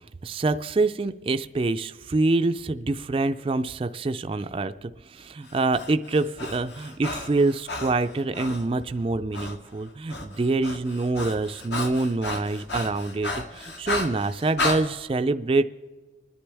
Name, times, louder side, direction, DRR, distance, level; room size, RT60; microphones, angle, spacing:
voice 1, 0.2-15.7, right 3 dB, 30° right, 9 dB, 0.3 m, -26 dB
Breathing, 5.5-8.7 9.3-9.6 9.9-14.8, left 2 dB, 70° left, 1.8 m, -33 dB
28.0 x 10.0 x 3.4 m, 1.4 s
head